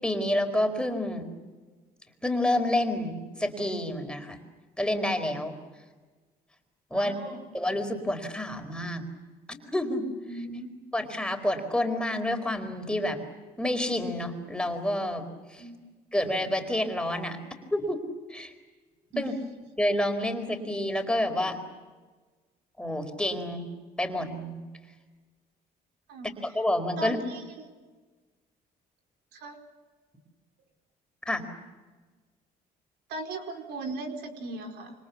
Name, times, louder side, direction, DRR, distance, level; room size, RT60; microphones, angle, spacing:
voice 1, 0.0-1.2 2.2-4.4 4.8-5.5 6.9-9.0 9.5-10.0 10.9-13.2 13.6-15.3 15.5-15.6 16.1-17.4 17.7-18.0 18.3-18.5 19.2-19.3 19.8-21.6 22.8-23.6 24.0-24.6 26.2-27.2 31.3-31.4, left 1 dB, 5° left, 6 dB, 4.5 m, -29 dB
voice 2, 6.9-7.4 10.3-10.7 15.6-15.8 19.1-19.3 26.1-26.3 27.0-27.4 29.3-29.6 33.1-34.9, right 2 dB, 80° right, 4 dB, 4.7 m, -38 dB
27.5 x 25.5 x 7.1 m, 1.3 s
cardioid pair, 110°, 17 cm